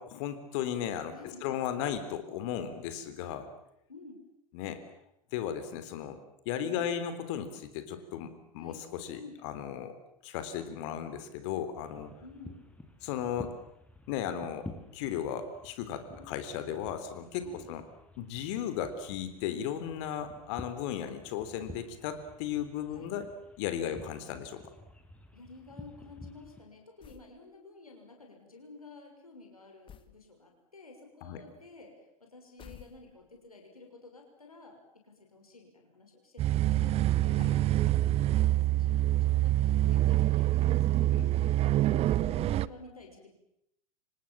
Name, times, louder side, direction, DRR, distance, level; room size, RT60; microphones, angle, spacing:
voice 1, 0.0-1.1 1.4-3.5 4.5-4.8 5.3-6.2 6.5-9.9 10.2-12.1 13.0-13.6 14.1-14.7 14.9-17.8 18.2-23.3 23.6-24.6 31.2-31.4 37.4-37.6 41.1-41.3, left 9 dB, 55° left, 10 dB, 3.6 m, -35 dB
voice 2, 1.1-1.6 3.9-4.3 8.6-8.8 9.2-9.4 12.2-12.6 16.1-16.3 17.4-17.8 22.9-23.1 23.9-24.1 25.3-43.3, left 3 dB, 85° left, 2 dB, 6.4 m, -52 dB
sound 1, 11.8-26.6, left 2 dB, 5° left, 5.4 m, -51 dB
sound 2, 27.0-27.4 29.9-30.2 32.6-33.4, left 8 dB, 30° left, 2.5 m, -52 dB
sound 3, 36.4-42.7, right 14 dB, 35° right, 1.0 m, -26 dB
30.0 x 26.5 x 7.4 m, 0.80 s
figure-of-eight pair, 85°, 18 cm